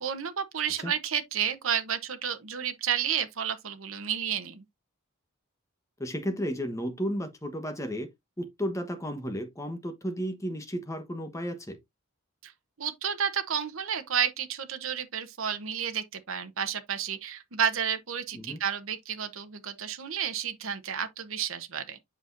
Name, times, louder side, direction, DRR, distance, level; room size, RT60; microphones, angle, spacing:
voice 1, 0.0-4.6 12.4-12.5 12.8-22.0, right 8 dB, 70° right, 1.0 m, -31 dB
voice 2, 6.0-8.1 8.4-11.8 18.3-18.6, equal, 15° left, 1.1 m, -33 dB
8.1 x 5.2 x 2.6 m
head